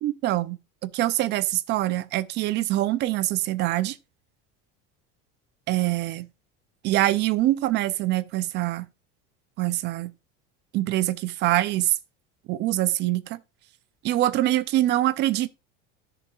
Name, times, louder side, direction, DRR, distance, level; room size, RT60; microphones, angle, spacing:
voice 1, 0.0-4.0 5.7-6.3 6.8-8.9 9.6-10.1 10.7-12.0 12.5-13.4 14.0-15.5, right 15 dB, 35° right, 0.5 m, -24 dB
13.5 x 6.9 x 2.4 m
cardioid pair, 170°, 31 cm